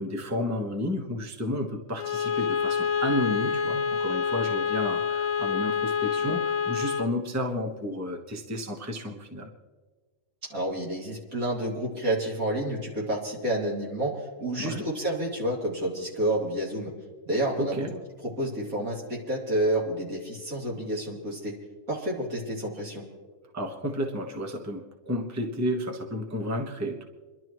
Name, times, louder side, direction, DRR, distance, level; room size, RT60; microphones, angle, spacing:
voice 1, 0.0-9.5 14.6-14.8 17.6-17.9 23.5-27.0, left 1 dB, 10° right, 2 dB, 1.1 m, -32 dB
Bowed string instrument, 2.0-7.2, left 6 dB, 75° left, 1.1 m, -27 dB
voice 2, 10.5-16.9 17.3-17.8 18.2-21.6 21.9-23.1, right 1 dB, 70° right, -4 dB, 3.5 m, -29 dB
29.5 x 12.0 x 3.1 m, 1.4 s
omnidirectional pair, 1.5 m